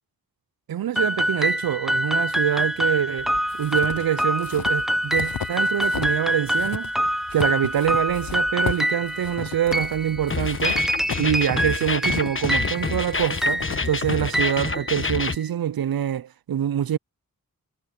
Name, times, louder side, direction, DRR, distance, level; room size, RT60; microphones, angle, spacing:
voice 1, 0.7-3.3 3.6-6.9 7.3-10.8 11.2-17.0, right 10 dB, 80° right, 0.5 m, -25 dB
sound 1, 1.0-15.4, equal, ahead, 0.6 m, -26 dB
sound 2, 3.2-6.2 6.5-14.6, left 8 dB, 75° left, 0.8 m, -35 dB
sound 3, 10.3-15.3, left 3 dB, 35° left, 1.3 m, -28 dB
wide cardioid pair, 50°, 36 cm